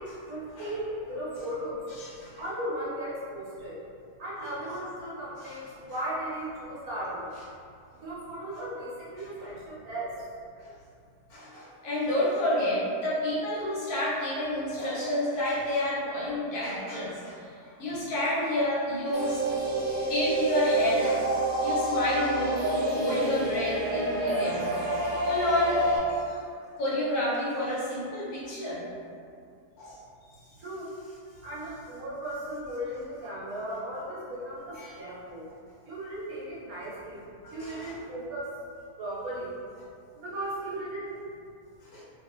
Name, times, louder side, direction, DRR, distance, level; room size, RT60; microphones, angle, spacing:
voice 1, 0.0-1.8 2.4-3.8 4.2-7.3 8.0-10.1 30.6-30.9 31.4-35.4 35.8-37.2 37.5-38.5 39.0-39.5 40.1-41.2, right 1 dB, 70° right, -8 dB, 1.3 m, -36 dB
voice 2, 1.9-2.4 4.4-4.5 5.4-5.6 10.6-10.7 11.3-19.4 20.1-21.3 21.6-24.6 25.2-25.8 26.1-26.4 26.8-28.8 29.8-30.0 34.7-35.0 37.4-37.9 41.8-42.0, left 1 dB, 75° left, -7 dB, 1.3 m, -30 dB
sound 1, 19.1-26.0, right 1 dB, 85° right, 1.2 m, -28 dB
3.0 x 2.5 x 2.4 m, 2.4 s
omnidirectional pair, 1.7 m